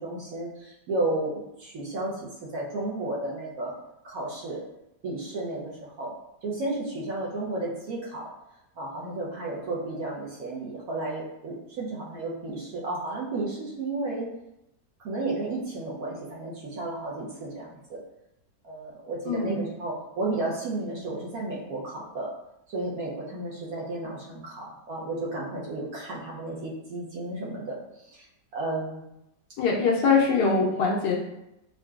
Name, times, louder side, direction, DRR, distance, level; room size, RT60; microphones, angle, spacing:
voice 1, 0.0-3.7 4.0-4.6 5.0-6.1 6.4-8.3 8.8-14.3 15.0-18.0 18.6-22.3 22.7-27.8 28.1-28.3 28.5-29.1, right 2 dB, 65° right, -5 dB, 1.0 m, -33 dB
voice 2, 19.3-19.6 29.6-31.2, left 4 dB, 85° left, -2 dB, 1.3 m, -23 dB
3.8 x 2.2 x 2.3 m, 0.84 s
omnidirectional pair, 1.8 m